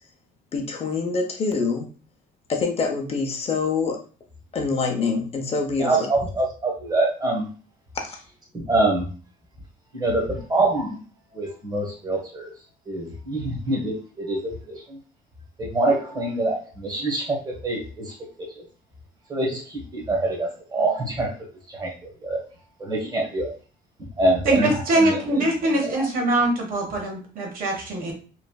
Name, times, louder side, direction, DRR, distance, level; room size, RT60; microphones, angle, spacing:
voice 1, 0.5-1.9 2.5-4.0 4.5-6.1 7.9-8.2, left 4 dB, 35° left, 3 dB, 0.6 m, -25 dB
voice 2, 5.8-7.5 8.5-9.1 9.9-11.0 11.3-12.5 12.9-15.0 15.6-18.1 18.6-18.7 19.3-21.3 21.7-22.4 22.8-23.5 24.0-26.1, right 2 dB, 25° right, -1 dB, 1.2 m, -25 dB
voice 3, 24.4-28.1, right 1 dB, 55° right, 0 dB, 1.2 m, -23 dB
3.1 x 2.5 x 2.2 m, 0.38 s
cardioid pair, 110°, 17 cm